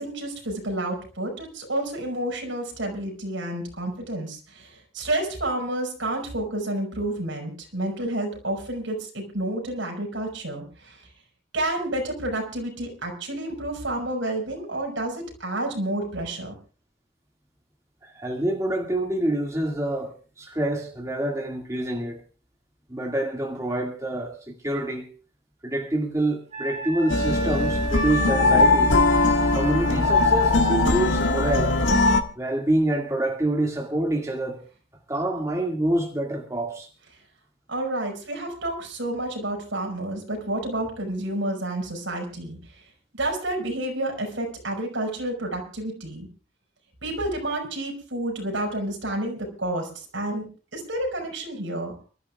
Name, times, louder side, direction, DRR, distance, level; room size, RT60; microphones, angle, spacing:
voice 1, 0.0-11.1 11.5-16.5 37.7-42.8 43.2-46.3 47.0-50.5 50.7-51.9, right 1 dB, 75° right, 5.6 m, -30 dB
voice 2, 18.0-22.2 22.9-25.1 25.6-28.9 29.5-31.8 32.4-34.6 35.1-36.9, right 1 dB, 15° right, 2.1 m, -27 dB
Wind instrument woodwind instrument, 26.5-30.8, right 3 dB, 35° right, 2.3 m, -36 dB
sound 1, 27.1-32.2, left 2 dB, 75° left, 1.6 m, -20 dB
30.0 x 13.0 x 2.4 m
head